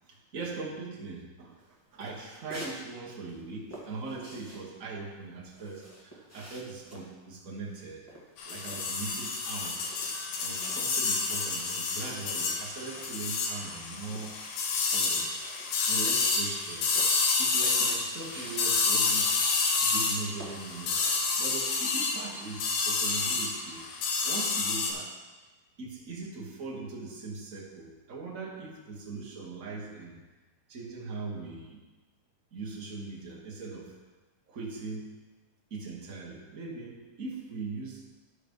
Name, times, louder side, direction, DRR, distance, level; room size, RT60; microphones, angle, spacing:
voice 1, 0.1-1.6 1.9-8.1 8.4-9.9 10.4-14.4 14.9-16.9 17.4-19.4 19.8-21.0 21.4-23.9 24.2-25.1 25.8-30.2 30.7-31.8 32.5-33.9 34.5-35.1 35.7-38.0, right 3 dB, 65° right, -3 dB, 0.8 m, -40 dB
sound 1, 1.6-2.8 3.1-9.2 9.5-10.9 11.3-11.4 11.5-16.0 16.3-16.6 16.9-19.4 19.8-20.0 20.4-21.4, right 1 dB, 10° left, 0.7 m, -49 dB
sound 2, 8.4-24.9, left 4 dB, 85° left, 2.6 m, -29 dB
12.0 x 4.9 x 5.3 m, 1.2 s
omnidirectional pair, 3.7 m